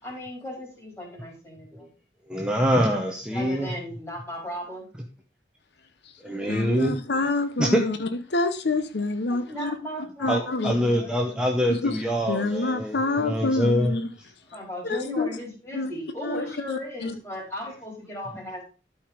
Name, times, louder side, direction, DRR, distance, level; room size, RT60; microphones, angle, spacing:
voice 1, 0.0-1.9 3.3-4.9 9.3-11.5 14.5-18.6, left 1 dB, 15° left, -2 dB, 4.0 m, -37 dB
voice 2, 2.3-3.7 6.2-7.0 7.6-7.8 10.3-13.9, equal, 5° right, 1 dB, 0.9 m, -24 dB
voice 3, 6.5-9.7 10.2-10.9 11.7-12.0 12.3-14.1 14.9-15.3 15.7-15.9 16.2-17.1, left 3 dB, 70° left, 9 dB, 0.8 m, -27 dB
12.0 x 5.0 x 5.1 m, 0.35 s
head